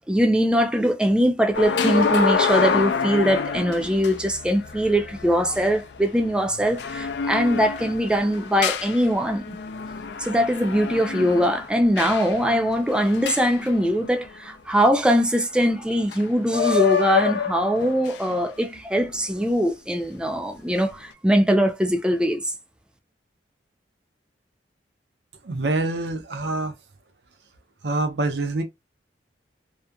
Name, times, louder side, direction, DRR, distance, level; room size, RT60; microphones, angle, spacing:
voice 1, 0.1-9.6 10.2-22.5, equal, 5° right, 0.3 m, -22 dB
sound 1, 1.5-14.3 16.1-16.2 16.5-18.3 19.0-19.2, left 6 dB, 75° left, 0.4 m, -27 dB
voice 2, 25.4-26.8 27.8-28.6, right 2 dB, 70° right, 0.6 m, -25 dB
2.7 x 2.4 x 2.2 m
head